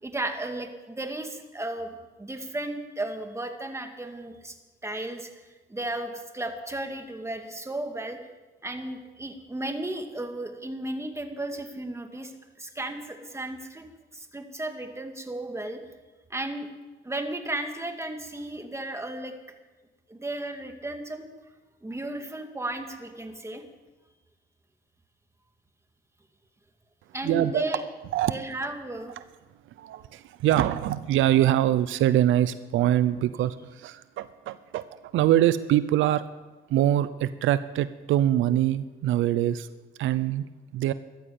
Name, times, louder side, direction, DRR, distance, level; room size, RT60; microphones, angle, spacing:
voice 1, 0.0-4.5 4.8-5.3 5.7-8.2 8.6-12.3 12.6-13.9 14.1-15.8 16.3-16.7 17.0-19.3 20.1-21.3 21.8-23.6 27.1-27.8 28.3-29.1, right 1 dB, 15° right, 5 dB, 2.2 m, -34 dB
voice 2, 27.2-27.6 28.1-28.3 29.8-34.9 35.1-36.3 36.7-39.7 40.0-40.5 40.7-40.9, right 12 dB, 85° right, 14 dB, 0.6 m, -24 dB
14.0 x 12.5 x 7.0 m, 1.2 s
cardioid pair, 90°, 20 cm